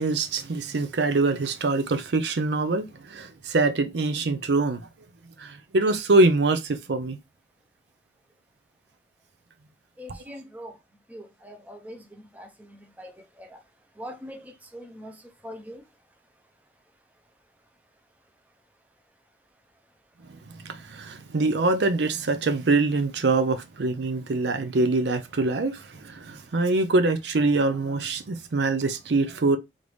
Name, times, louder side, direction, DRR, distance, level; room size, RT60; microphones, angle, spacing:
voice 1, 0.0-4.8 5.4-7.2 20.6-29.6, right 3 dB, 80° right, 0.5 m, -24 dB
voice 2, 10.0-10.8 11.1-13.1 13.4-13.6 14.0-15.8, equal, 10° right, 0.6 m, -42 dB
3.9 x 3.3 x 3.2 m
head